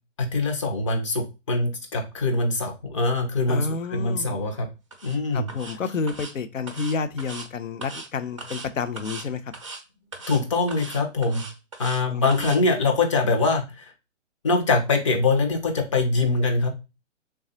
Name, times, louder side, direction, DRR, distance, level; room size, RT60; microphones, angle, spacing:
voice 1, 0.2-4.7 5.0-5.5 10.3-11.4 11.8-13.9 14.4-16.7, left 3 dB, 25° left, 3 dB, 0.5 m, -23 dB
voice 2, 3.5-4.5 5.3-9.5 12.1-12.6, left 5 dB, 80° left, 11 dB, 0.7 m, -30 dB
sound 1, 4.9-5.2 5.5-5.8 6.1-6.3 6.7-7.5 7.8-8.1 8.4-8.7 9.0-9.3 9.5-9.8 10.1-10.4 10.7-12.0 12.3-12.6, right 3 dB, 25° right, 0.4 m, -38 dB
3.3 x 2.3 x 3.9 m, 0.28 s
figure-of-eight pair, 140°, 39 cm